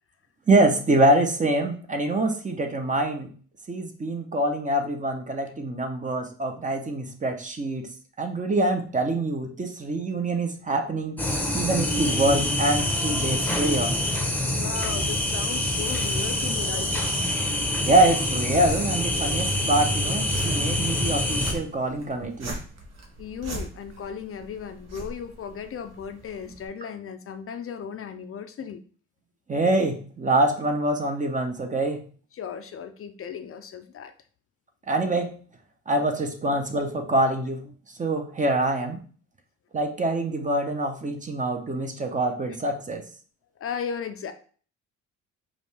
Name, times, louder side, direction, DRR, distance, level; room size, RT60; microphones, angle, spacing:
voice 1, 0.5-3.3 3.7-7.9 8.2-11.2 11.5-13.9 17.8-22.6 29.5-32.1 34.9-35.3 35.9-37.6 38.0-39.0 39.7-43.0, right 2 dB, 25° right, 5 dB, 0.8 m, -25 dB
sound 1, 11.2-21.5, left 1 dB, 5° left, 0.8 m, -26 dB
voice 2, 14.5-17.3 23.2-28.8 32.3-34.1 43.6-44.3, left 7 dB, 45° left, 8 dB, 0.5 m, -36 dB
sound 2, 18.7-26.7, right 2 dB, 60° right, 1.1 m, -41 dB
5.0 x 2.4 x 3.3 m, 0.42 s
cardioid pair, 90°, 30 cm